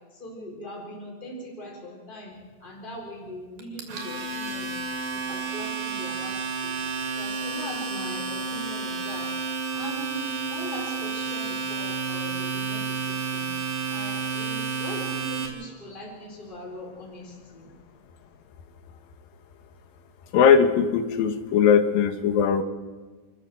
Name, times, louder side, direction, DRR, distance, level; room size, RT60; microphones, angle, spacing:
voice 1, 0.1-6.8 7.1-9.4 9.7-17.7, left 1 dB, 15° left, -1 dB, 4.5 m, -41 dB
Domestic sounds home sounds, 3.6-15.5, right 5 dB, 75° right, 4.3 m, -31 dB
voice 2, 20.3-22.6, left 7 dB, 90° left, 9 dB, 3.1 m, -19 dB
27.0 x 14.0 x 7.6 m, 1.3 s
omnidirectional pair, 4.0 m